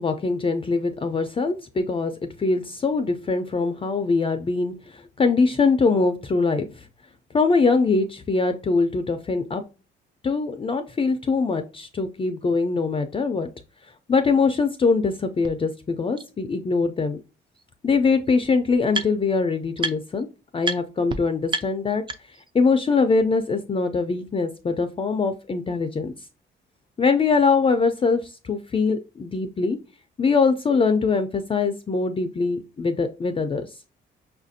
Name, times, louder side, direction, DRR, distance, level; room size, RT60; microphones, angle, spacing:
voice 1, 0.0-6.8 7.3-9.6 10.2-13.5 14.1-17.2 17.8-20.3 20.5-22.0 22.5-26.1 27.0-29.8 30.2-33.7, left 4 dB, 25° left, 7 dB, 0.4 m, -22 dB
sound 1, 15.4-15.5 16.2-16.3 17.6-17.7 17.9-19.4 19.8-20.2 20.6-20.8 21.1-21.2 21.5-22.5, right 2 dB, 25° right, 0.5 m, -31 dB
5.4 x 2.5 x 2.6 m, 0.32 s
cardioid pair, 90°, 20 cm